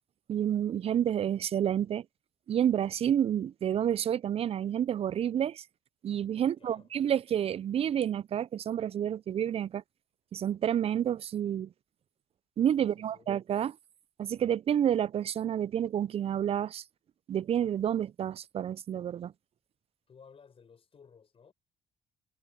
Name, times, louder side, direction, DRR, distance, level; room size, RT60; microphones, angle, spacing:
voice 1, 0.3-2.0 2.5-5.6 6.0-9.8 10.3-11.7 12.6-13.8 14.2-16.8 17.3-19.3, right 9 dB, 45° right, 0.5 m, -29 dB
voice 2, 6.4-6.9 12.8-13.3 20.1-21.5, left 6 dB, 40° left, 7.1 m, -57 dB
hypercardioid pair, 60°, 14 cm